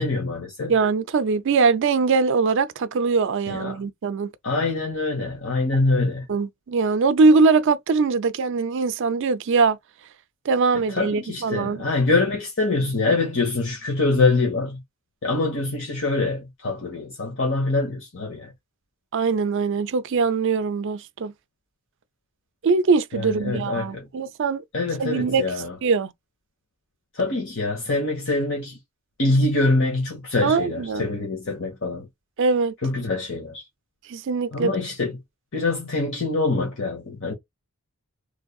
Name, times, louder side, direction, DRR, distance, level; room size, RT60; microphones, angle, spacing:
voice 1, 0.0-0.7 3.5-3.8 4.4-6.2 10.9-14.8 15.2-18.5 23.1-24.0 24.7-25.7 27.2-28.8 29.2-32.1 32.8-33.6 34.5-35.2 35.5-37.3, left 3 dB, 60° left, 1.3 m, -24 dB
voice 2, 0.7-4.3 6.3-9.8 10.5-11.8 19.1-21.3 22.6-24.6 25.0-25.4 25.8-26.1 30.4-31.1 32.4-32.7 34.1-34.7, right 4 dB, 60° right, 0.4 m, -21 dB
3.6 x 3.2 x 2.3 m
head